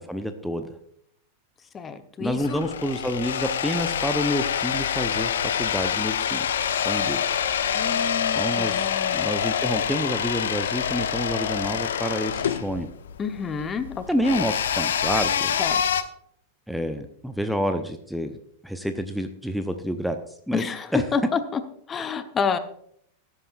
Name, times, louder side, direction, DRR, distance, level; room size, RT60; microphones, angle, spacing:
voice 1, 0.1-0.7 2.2-7.2 8.4-12.9 14.1-15.5 16.7-18.3 18.6-20.2 20.5-20.6 20.9-21.0, equal, ahead, 7 dB, 0.8 m, -28 dB
voice 2, 1.7-2.7 7.7-9.3 13.2-14.0 15.6-16.0 20.5-21.6 21.9-22.6, left 6 dB, 20° left, 10 dB, 1.0 m, -29 dB
sound 1, 2.3-16.0, left 8 dB, 65° left, 0.8 m, -26 dB
18.5 x 9.9 x 2.5 m, 0.67 s
figure-of-eight pair, 90°, 0 cm